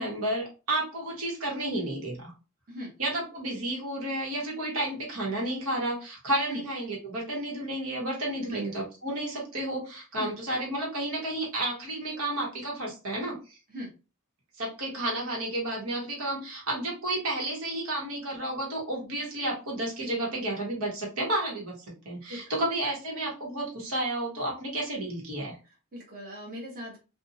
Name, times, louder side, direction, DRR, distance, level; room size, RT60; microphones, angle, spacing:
voice 1, 0.0-2.3 3.0-13.6 14.6-25.6, right 1 dB, 90° right, -2 dB, 1.2 m, -31 dB
voice 2, 22.3-22.6 25.6-27.0, equal, 40° right, -3 dB, 0.9 m, -39 dB
2.6 x 2.3 x 2.6 m, 0.32 s
head